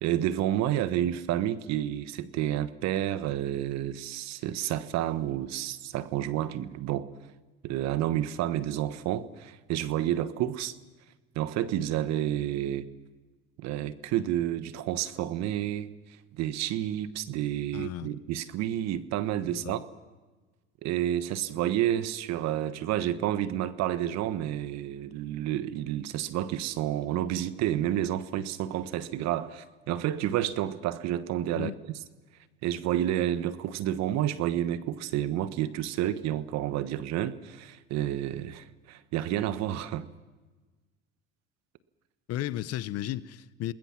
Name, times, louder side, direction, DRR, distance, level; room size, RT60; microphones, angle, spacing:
voice 1, 0.0-7.1 7.6-10.8 11.3-12.9 13.6-15.9 16.3-19.9 20.8-32.0 32.6-40.1, right 12 dB, 65° right, 1.3 m, -30 dB
voice 2, 17.7-18.1 19.5-19.8 31.5-31.8 42.3-43.7, left 13 dB, 60° left, 1.0 m, -34 dB
28.5 x 20.5 x 6.0 m
hypercardioid pair, 75°, 29 cm